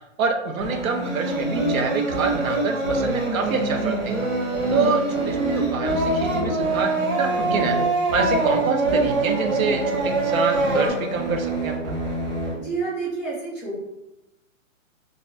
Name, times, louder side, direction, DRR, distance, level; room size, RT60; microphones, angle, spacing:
voice 1, 0.2-4.0 4.2-4.3 4.7-7.8 8.1-12.0, right 5 dB, 85° right, 5 dB, 0.5 m, -26 dB
sound 1, 0.6-12.6, right 1 dB, 45° right, 0.6 m, -29 dB
Singing, 1.0-10.9, right 2 dB, 70° right, 1.1 m, -25 dB
voice 2, 12.5-13.8, right 4 dB, 5° left, -11 dB, 0.5 m, -29 dB
2.2 x 2.1 x 2.7 m, 0.92 s
hypercardioid pair, 165°, 40 cm